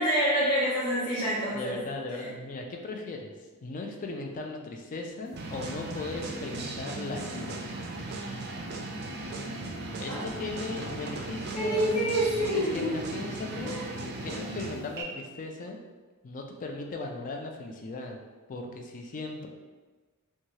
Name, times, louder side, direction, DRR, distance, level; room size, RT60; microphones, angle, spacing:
voice 1, 0.0-1.8 2.2-2.3 10.1-10.4 11.5-13.2 13.5-14.1, equal, 75° left, -12 dB, 0.9 m, -28 dB
voice 2, 1.5-3.3 3.6-7.7 10.0-12.0 12.5-13.8 14.2-15.8 16.2-18.2 18.5-19.5, left 2 dB, 35° left, 2 dB, 0.3 m, -37 dB
sound 1, 5.3-15.0, right 2 dB, 45° right, 0.4 m, -37 dB
3.0 x 2.3 x 2.7 m, 1.3 s
head